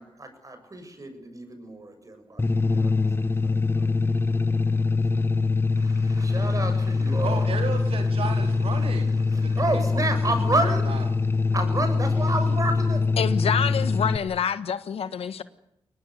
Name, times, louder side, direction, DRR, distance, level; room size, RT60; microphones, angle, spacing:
voice 1, 0.0-5.3 5.7-7.5 9.3-10.9 11.5-13.0, right 2 dB, 35° right, 7.4 m, -31 dB
sound 1, 2.4-14.2, left 4 dB, 25° left, 1.5 m, -23 dB
voice 2, 7.2-10.2 10.5-11.0, right 5 dB, 70° right, 3.5 m, -34 dB
voice 3, 13.2-15.4, left 7 dB, 75° left, 1.5 m, -27 dB
23.5 x 20.0 x 9.5 m
cardioid pair, 60°, 10 cm